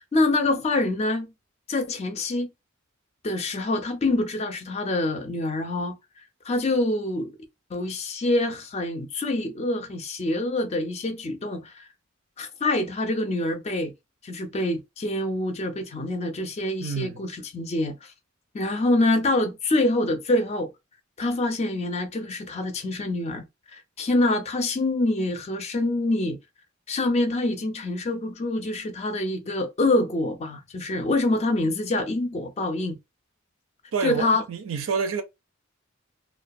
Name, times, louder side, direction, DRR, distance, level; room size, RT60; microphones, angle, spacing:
voice 1, 0.1-1.3 1.7-2.5 3.2-6.0 6.4-7.4 7.7-11.8 12.4-13.9 14.2-18.1 18.5-20.7 21.2-23.4 23.7-26.4 26.9-33.0 34.0-34.4, left 2 dB, 30° left, 0.4 m, -26 dB
voice 2, 16.8-17.3 33.9-35.2, right 5 dB, 80° right, 0.5 m, -28 dB
2.2 x 2.2 x 2.6 m
head